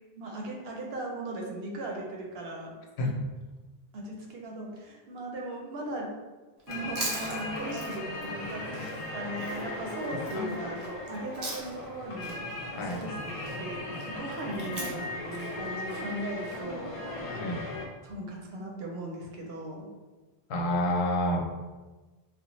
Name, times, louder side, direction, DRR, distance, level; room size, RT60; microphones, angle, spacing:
voice 1, 0.2-2.7 3.9-6.1 6.7-17.0 18.0-19.9, right 1 dB, 75° right, -1 dB, 0.9 m, -38 dB
Chewing mastication, 6.6-11.9 12.2-16.6, right 2 dB, 45° right, 0.7 m, -41 dB
sound 1, 6.7-17.8, left 2 dB, 45° left, 0.4 m, -38 dB
voice 2, 17.3-17.6 20.5-21.4, left 1 dB, 85° left, 0 dB, 0.9 m, -28 dB
3.4 x 2.1 x 3.0 m, 1.3 s
omnidirectional pair, 1.1 m